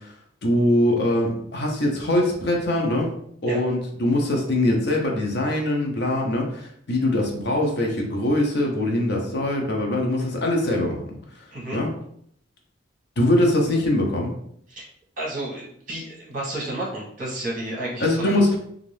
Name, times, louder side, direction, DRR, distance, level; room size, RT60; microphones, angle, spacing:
voice 1, 0.4-3.1 3.4-11.1 11.7-11.9 13.2-14.3 18.0-18.6, left 1 dB, 55° left, 0 dB, 0.7 m, -22 dB
voice 2, 15.2-18.4, right 1 dB, 40° right, -5 dB, 1.1 m, -31 dB
2.6 x 2.5 x 3.2 m, 0.69 s
head